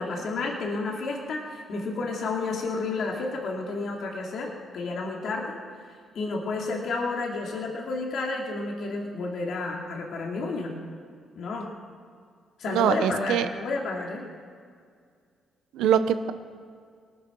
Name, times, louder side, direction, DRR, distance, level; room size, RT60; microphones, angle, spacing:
voice 1, 0.0-5.6 6.1-10.8 11.3-11.7 12.6-14.3, left 3 dB, 65° left, -1 dB, 2.5 m, -31 dB
voice 2, 12.7-13.5 15.7-16.3, right 9 dB, 90° right, 11 dB, 0.9 m, -23 dB
19.5 x 10.0 x 6.2 m, 2.1 s
cardioid pair, 90°, 0 cm